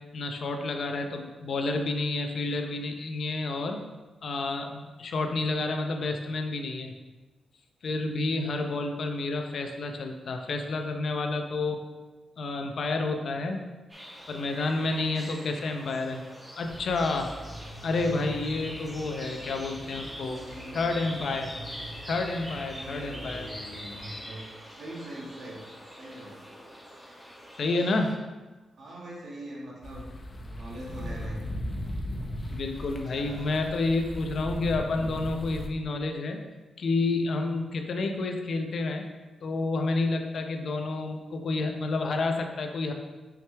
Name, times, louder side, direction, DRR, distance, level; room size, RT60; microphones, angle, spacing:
voice 1, 0.1-3.8 4.2-6.9 7.8-11.8 12.4-13.6 14.3-16.2 16.6-17.3 17.8-20.4 20.7-21.5 22.1-23.5 27.6-28.2 32.5-36.4 36.8-39.1 39.4-42.9, left 3 dB, 65° left, 4 dB, 0.7 m, -29 dB
sound 1, 13.9-28.1, equal, 20° right, 1.8 m, -44 dB
sound 2, 16.6-24.2, right 1 dB, 80° right, 1.6 m, -45 dB
voice 2, 19.0-19.5 20.2-21.1 22.7-25.7 26.0-26.4 28.8-30.1 30.4-31.4 33.1-33.5, right 1 dB, 60° right, -4 dB, 1.9 m, -43 dB
sound 3, 29.8-35.7, equal, 35° left, 0.9 m, -37 dB
6.4 x 4.9 x 3.4 m, 1.2 s
cardioid pair, 80°, 0 cm